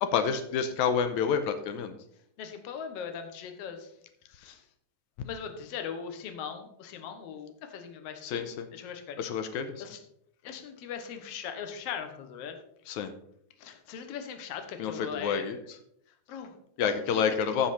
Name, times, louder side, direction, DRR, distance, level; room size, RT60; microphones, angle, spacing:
voice 1, 0.0-1.9 8.2-8.7 9.2-9.7 12.9-13.1 14.8-15.6 16.8-17.7, left 7 dB, 85° left, 8 dB, 2.1 m, -28 dB
voice 2, 2.4-3.9 4.3-4.6 5.2-8.4 8.7-9.3 9.8-10.0 10.4-12.6 13.6-15.5 16.3-17.2 17.6-17.7, left 7 dB, 60° left, 7 dB, 2.0 m, -40 dB
15.0 x 5.9 x 4.2 m, 0.72 s
omnidirectional pair, 3.4 m